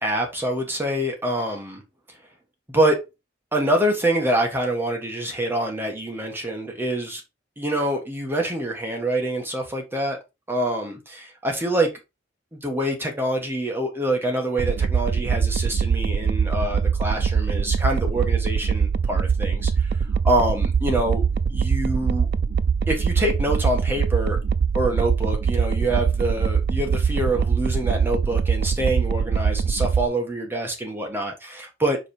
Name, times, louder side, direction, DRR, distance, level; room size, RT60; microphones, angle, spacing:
voice 1, 0.0-1.8 2.7-3.0 3.5-7.2 7.6-10.2 10.5-11.9 12.5-20.0 20.2-21.2 21.5-22.3 22.9-24.4 24.7-32.0, right 1 dB, 10° right, 1.4 m, -25 dB
sound 1, 14.6-30.1, right 6 dB, 55° right, 0.3 m, -23 dB
5.1 x 4.2 x 4.4 m
head